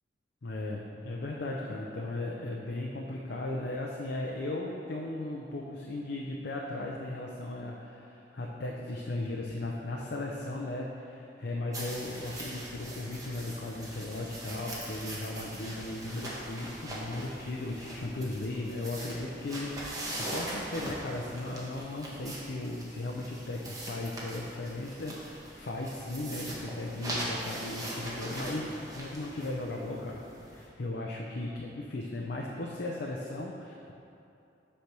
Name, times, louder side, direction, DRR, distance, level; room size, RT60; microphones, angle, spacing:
voice 1, 0.4-33.9, left 2 dB, 60° left, -1 dB, 0.5 m, -37 dB
sound 1, 11.7-30.7, right 1 dB, 20° right, 1.1 m, -41 dB
8.1 x 3.4 x 6.0 m, 2.7 s
head